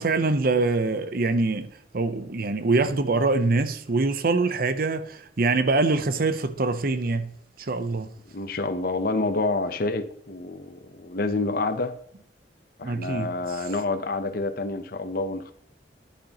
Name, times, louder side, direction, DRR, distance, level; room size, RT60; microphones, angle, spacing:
voice 1, 0.0-7.3 7.6-8.1 12.8-13.3, right 3 dB, 55° right, 0.7 m, -24 dB
voice 2, 8.3-12.0 12.8-15.5, left 2 dB, 55° left, 0.8 m, -28 dB
10.5 x 8.7 x 2.9 m
head